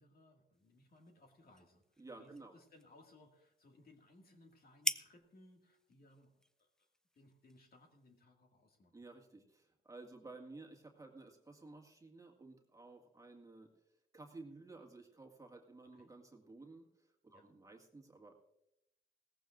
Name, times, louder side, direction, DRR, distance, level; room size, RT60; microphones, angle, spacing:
voice 1, 0.0-6.9 7.2-9.0 15.8-16.1 17.3-17.5, left 2 dB, 50° left, 3 dB, 2.1 m, -64 dB
sound 1, 0.5-8.2, left 1 dB, 5° left, 0.4 m, -47 dB
voice 2, 2.0-2.5 8.9-18.3, right 3 dB, 15° right, 1 dB, 1.9 m, -55 dB
17.5 x 14.5 x 2.5 m, 0.84 s
cardioid pair, 90°, 20 cm